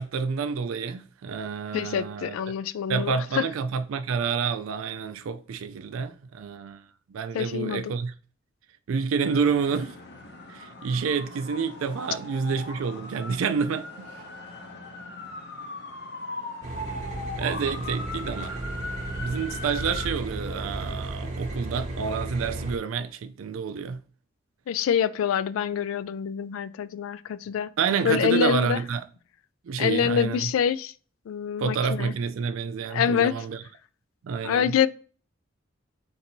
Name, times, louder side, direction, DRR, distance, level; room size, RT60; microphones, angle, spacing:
voice 1, 0.0-2.4 2.9-6.8 7.1-8.1 8.9-10.0 10.5-14.1 17.4-18.7 19.2-24.0 27.8-29.0 29.6-30.5 31.6-33.6 34.2-34.7, right 5 dB, 90° right, 0.4 m, -28 dB
voice 2, 1.7-3.4 7.3-7.9 24.7-27.7 28.0-28.8 29.8-30.9 31.3-32.1 32.9-33.4 34.4-34.9, left 8 dB, 90° left, 0.3 m, -26 dB
sound 1, 9.2-20.1, left 2 dB, 55° left, 0.7 m, -39 dB
sound 2, 16.6-22.8, right 2 dB, 35° right, 0.7 m, -34 dB
3.9 x 2.7 x 4.3 m
head